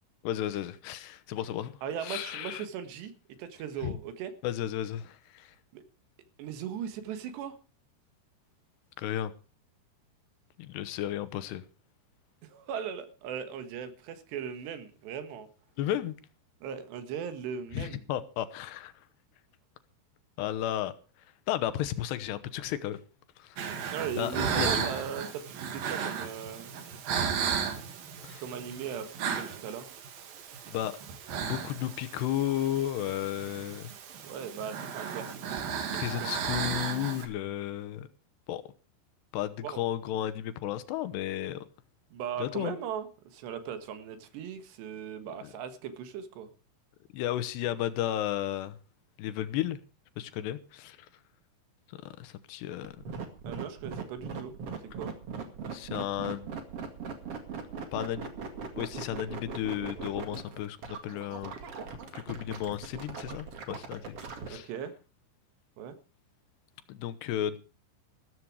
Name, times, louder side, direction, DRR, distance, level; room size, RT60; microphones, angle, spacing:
voice 1, 0.2-1.7 2.0-2.7 3.8-4.0 4.4-5.5 9.0-9.3 10.6-11.6 15.8-16.1 17.7-18.9 20.4-20.9 21.5-23.0 23.4-23.6 24.2-24.9 28.2-28.4 30.7-31.0 31.4-33.9 35.9-38.1 38.5-38.6 39.3-41.7 42.4-42.8 45.4-45.5 47.1-48.8 49.2-49.8 50.2-51.0 52.2-53.2 55.7-56.5 57.9-58.3 58.8-61.5 62.1-64.2 64.5-64.7 66.9-67.6, left 12 dB, 80° left, 3.0 m, -33 dB
voice 2, 1.8-3.1 3.4-4.3 5.7-5.8 6.4-7.6 12.5-15.5 16.6-18.0 23.9-26.7 28.4-29.9 34.2-35.6 35.9-36.3 39.6-39.8 42.1-46.5 53.5-54.5 55.0-55.1 64.5-64.9 65.8-66.0, right 8 dB, 80° right, 3.6 m, -38 dB
sound 1, 23.6-37.3, right 7 dB, 60° right, 3.3 m, -35 dB
sound 2, 52.8-64.5, right 5 dB, 45° right, 2.4 m, -39 dB
14.5 x 13.5 x 4.8 m
omnidirectional pair, 5.0 m